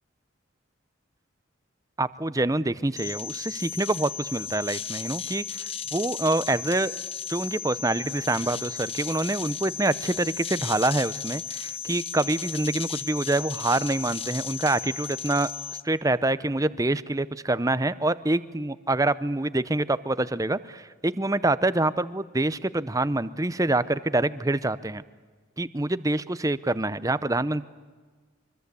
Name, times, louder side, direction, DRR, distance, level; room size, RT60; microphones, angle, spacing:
voice 1, 2.0-6.9 7.3-15.5 15.8-25.0 25.6-27.6, right 2 dB, 15° right, 15 dB, 0.7 m, -26 dB
sound 1, 3.0-15.8, left 7 dB, 30° left, 0.8 m, -35 dB
24.5 x 24.5 x 8.3 m, 1.4 s
head